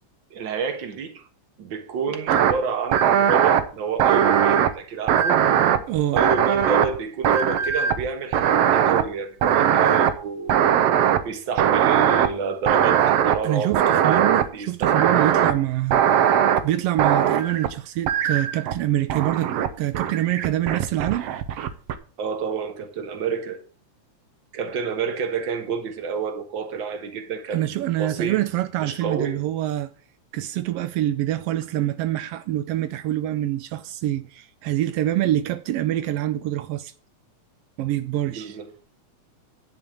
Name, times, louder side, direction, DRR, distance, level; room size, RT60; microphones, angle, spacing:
voice 1, 0.3-1.3 1.6-5.4 6.1-10.6 11.2-15.3 22.2-23.6 24.5-27.7 28.0-28.4 28.8-29.4 38.3-38.7, right 5 dB, 50° right, 1.7 m, -29 dB
sound 1, 2.3-2.5 2.9-3.6 4.0-4.7 5.1-7.0 7.2-8.1 8.3-9.0 9.4-10.1 10.5-11.2 11.6-12.3 12.7-13.4 13.7-14.4 14.8-15.5 15.9-16.6 17.0-17.7 18.1-18.8 19.1-19.7 19.9-21.9, right 9 dB, 70° right, 1.7 m, -19 dB
voice 2, 5.9-6.2 13.4-16.0 16.6-21.3 27.5-29.9 30.3-36.9 37.8-38.6, right 13 dB, 85° right, 1.3 m, -25 dB
10.5 x 5.3 x 7.0 m
omnidirectional pair, 3.4 m